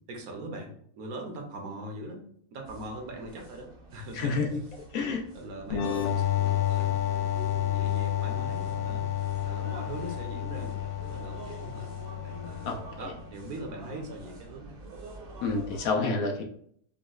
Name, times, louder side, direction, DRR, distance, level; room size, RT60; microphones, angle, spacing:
voice 1, 0.1-2.2 2.5-4.3 4.9-9.0 9.4-10.7 11.0-11.9 12.2-12.7 13.0-14.8, right 1 dB, 70° right, 2 dB, 1.2 m, -41 dB
sound 1, 2.6-15.9, right 3 dB, 50° right, 0.7 m, -47 dB
voice 2, 4.1-4.6 4.9-5.2 12.6-13.1 15.4-16.4, left 4 dB, 70° left, 2 dB, 0.9 m, -29 dB
sound 2, 5.7-13.2, left 12 dB, 85° left, 0.5 m, -30 dB
5.0 x 2.0 x 2.3 m, 0.63 s
omnidirectional pair, 1.7 m